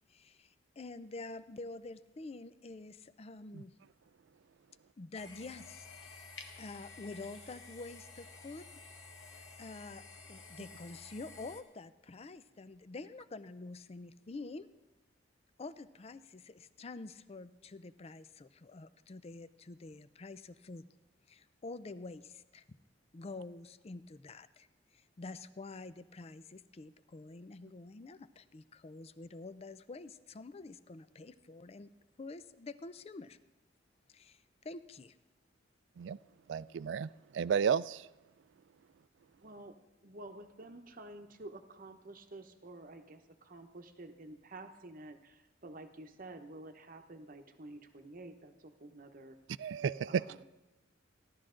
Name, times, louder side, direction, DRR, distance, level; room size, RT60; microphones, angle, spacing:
voice 1, 0.1-3.7 5.0-8.7 9.2-10.0 10.3-14.7 15.6-20.8 21.3-22.8 23.1-24.7 24.9-31.9 32.2-33.4 34.1-35.2, left 3 dB, 35° left, 14 dB, 0.5 m, -47 dB
sound 1, 5.1-11.6, left 3 dB, 70° left, 1.3 m, -52 dB
voice 2, 36.5-38.1 49.6-50.2, right 7 dB, 70° right, 19 dB, 0.3 m, -32 dB
voice 3, 39.4-39.7 40.0-49.4 50.0-50.4, right 2 dB, 50° right, 6 dB, 0.9 m, -50 dB
16.0 x 12.0 x 3.8 m, 1.0 s
head